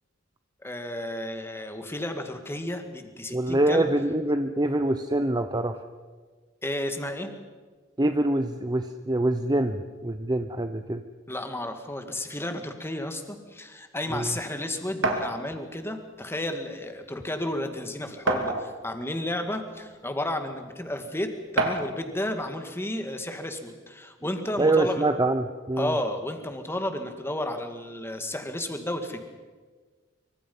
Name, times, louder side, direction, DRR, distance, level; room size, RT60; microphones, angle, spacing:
voice 1, 0.6-3.9 6.6-7.3 11.3-25.1 25.8-29.3, left 1 dB, 10° left, 6 dB, 2.0 m, -32 dB
voice 2, 3.3-5.8 8.0-11.0 14.1-14.3 24.6-25.9, right 1 dB, 20° right, 8 dB, 0.8 m, -25 dB
sound 1, 15.0-15.3 16.4-16.5 17.0-17.1 18.3-18.9 19.7-19.8 21.6-22.0, right 2 dB, 80° right, 2.8 m, -26 dB
25.0 x 24.5 x 5.5 m, 1.4 s
head